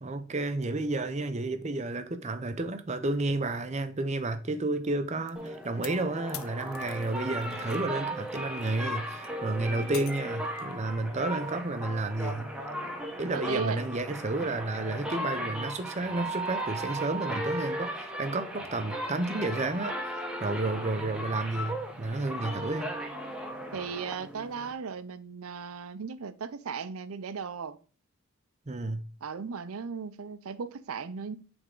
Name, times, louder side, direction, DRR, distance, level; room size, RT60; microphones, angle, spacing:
voice 1, 0.0-12.5 13.2-22.9 28.7-29.0, right 2 dB, 30° right, 0.6 m, -31 dB
Crack glass, 5.3-7.9 8.2-10.8, left 11 dB, 80° left, 0.6 m, -46 dB
sound 1, 5.4-24.7, right 1 dB, 5° right, 0.8 m, -36 dB
voice 2, 13.3-13.8 23.7-27.8 29.2-31.4, right 6 dB, 85° right, 0.5 m, -36 dB
8.2 x 3.5 x 3.7 m
head